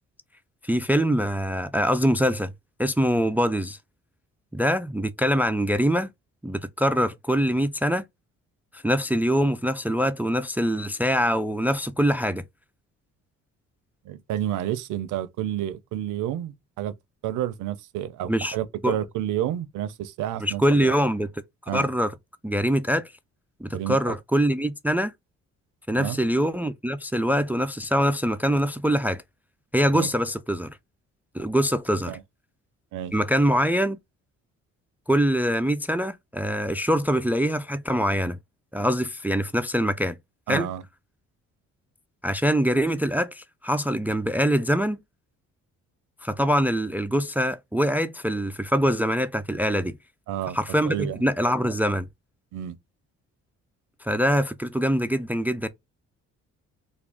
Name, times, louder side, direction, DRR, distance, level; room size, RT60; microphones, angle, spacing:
voice 1, 0.6-2.5 2.8-3.8 4.5-6.1 6.4-8.0 8.7-12.4 18.3-18.6 18.8-19.0 20.4-21.3 21.7-22.1 22.4-23.1 23.6-25.1 25.9-29.2 29.7-30.8 31.3-32.2 33.1-34.0 35.1-38.4 38.7-40.1 40.5-40.7 42.2-45.0 46.2-50.0 50.5-52.1 54.0-55.7, equal, 5° right, 0.3 m, -24 dB
voice 2, 14.0-16.9 17.2-20.9 21.7-21.9 23.7-24.0 26.0-26.2 29.9-30.1 32.1-32.2 32.9-33.1 40.5-40.8 50.3-50.6 50.9-51.2 52.5-52.8, right 12 dB, 90° right, 0.6 m, -30 dB
3.5 x 2.3 x 3.5 m
cardioid pair, 90°, 30 cm